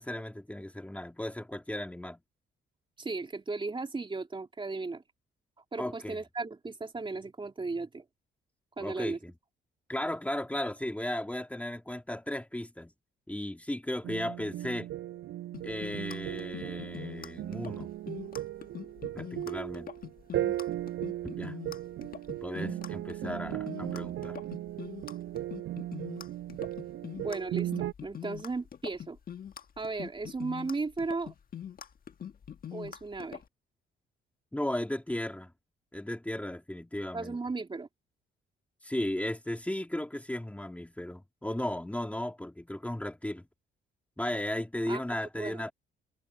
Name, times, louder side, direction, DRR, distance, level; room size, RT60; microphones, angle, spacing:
voice 1, 0.0-2.2 5.8-6.2 8.8-9.3 9.9-12.9 13.3-14.9 15.6-17.9 19.1-19.9 21.4-21.6 22.4-24.4 34.5-35.5 35.9-37.4 38.8-43.5 44.2-45.7, left 1 dB, 5° left, 2.5 m, -35 dB
voice 2, 3.0-5.0 5.7-8.0 8.8-9.2 27.2-29.2 29.8-31.3 32.7-33.4 37.1-37.9 44.9-45.7, right 3 dB, 25° right, 2.8 m, -36 dB
sound 1, 14.0-27.9, right 14 dB, 85° right, 5.7 m, -37 dB
sound 2, 15.5-33.4, left 9 dB, 45° left, 1.6 m, -43 dB
cardioid pair, 90°, 20 cm